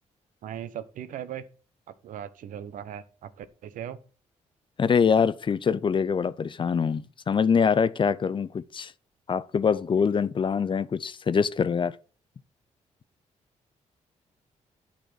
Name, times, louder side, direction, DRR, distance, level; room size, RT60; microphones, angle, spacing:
voice 1, 0.4-1.4 2.0-4.0, right 10 dB, 75° right, 0.8 m, -38 dB
voice 2, 4.8-8.9 9.3-11.9, left 6 dB, 40° left, 0.5 m, -24 dB
9.1 x 4.1 x 6.2 m
cardioid pair, 70°, 14 cm